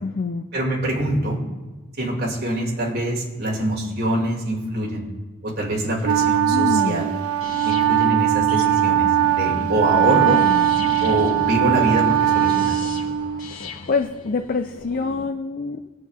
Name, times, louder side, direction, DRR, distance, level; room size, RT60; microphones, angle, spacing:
voice 1, 0.0-0.4 6.5-7.0 10.1-10.7 13.9-15.8, left 4 dB, 40° left, 7 dB, 0.4 m, -26 dB
voice 2, 0.5-1.4 2.0-5.1 5.4-7.1 7.6-9.1 9.4-10.4 11.0-12.8, right 1 dB, 50° right, -2 dB, 2.3 m, -24 dB
Wind instrument woodwind instrument, 6.0-13.6, right 11 dB, 85° right, 0.3 m, -20 dB
sound 1, 7.4-15.3, left 3 dB, 75° left, 1.1 m, -35 dB
21.0 x 7.7 x 2.4 m, 1.2 s
head